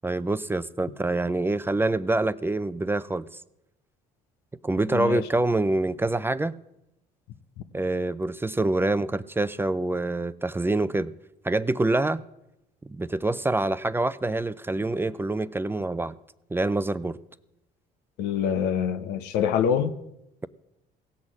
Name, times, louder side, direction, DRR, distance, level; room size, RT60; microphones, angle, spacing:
voice 1, 0.0-3.3 4.6-6.6 7.7-11.1 11.4-12.2 13.0-16.1 16.5-17.2, right 2 dB, 15° right, 0.5 m, -26 dB
voice 2, 4.9-5.3 18.2-19.9, left 8 dB, 80° left, 0.9 m, -25 dB
17.0 x 6.2 x 7.4 m
supercardioid pair, 80°, 17 cm